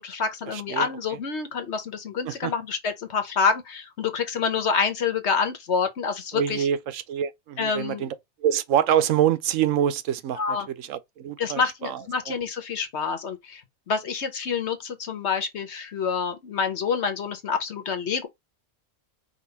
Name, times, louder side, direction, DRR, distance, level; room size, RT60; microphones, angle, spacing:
voice 1, 0.0-6.7 7.6-8.1 10.4-10.7 11.4-13.6 13.9-18.3, left 5 dB, 60° left, 1.2 m, -27 dB
voice 2, 0.5-0.9 2.2-2.5 6.3-8.1 8.4-12.3, right 10 dB, 80° right, 1.0 m, -26 dB
5.2 x 2.5 x 3.9 m
omnidirectional pair, 1.3 m